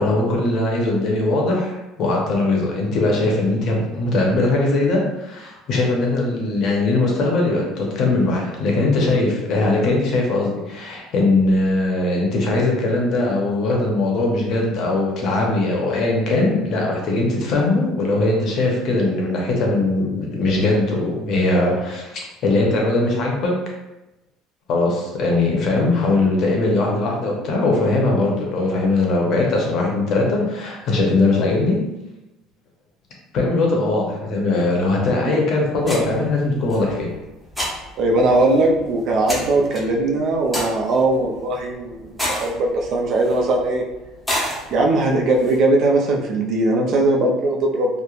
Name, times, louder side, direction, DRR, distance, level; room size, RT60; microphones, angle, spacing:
voice 1, 0.0-23.5 24.7-31.8 33.3-37.1, left 2 dB, 50° left, -1 dB, 0.7 m, -20 dB
sound 1, 35.8-45.6, equal, ahead, 0.7 m, -32 dB
voice 2, 38.0-43.8 44.7-48.0, right 2 dB, 55° right, 1 dB, 0.4 m, -19 dB
3.0 x 2.1 x 2.4 m, 0.99 s
cardioid pair, 140°, 0 cm